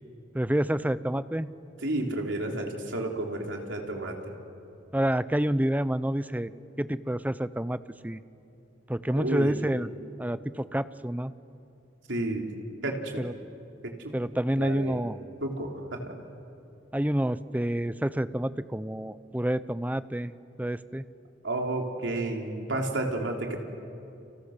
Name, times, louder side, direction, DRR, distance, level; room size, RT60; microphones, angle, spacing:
voice 1, 0.3-1.5 4.9-6.5 6.8-8.2 8.9-9.9 10.2-11.3 13.2-13.3 14.1-15.2 16.9-20.3 20.6-21.0, right 1 dB, 10° right, 14 dB, 0.6 m, -28 dB
voice 2, 1.8-4.3 9.2-9.5 12.1-12.5 12.8-13.2 13.8-14.1 14.6-15.0 15.4-16.1 21.4-23.6, right 2 dB, 75° right, 1 dB, 3.6 m, -31 dB
30.0 x 29.5 x 6.7 m, 2.7 s
head